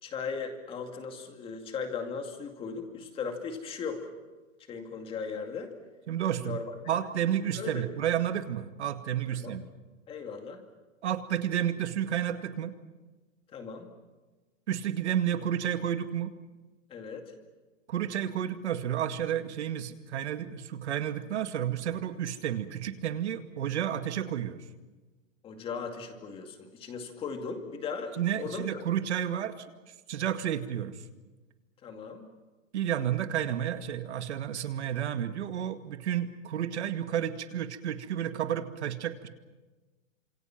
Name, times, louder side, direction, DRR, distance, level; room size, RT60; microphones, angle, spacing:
voice 1, 0.0-4.1 4.7-5.7 6.4-6.6 7.5-7.9 9.3-9.6 10.1-10.6 13.5-13.9 16.9-17.3 25.4-28.9 31.8-32.3, left 5 dB, 15° left, 5 dB, 2.3 m, -37 dB
voice 2, 6.1-6.6 6.9-9.7 11.0-12.7 14.7-16.3 17.9-24.6 28.2-29.7 30.1-30.9 32.7-39.3, right 10 dB, 60° right, 8 dB, 2.2 m, -31 dB
29.0 x 27.0 x 6.0 m, 1.2 s
hypercardioid pair, 165°, 38 cm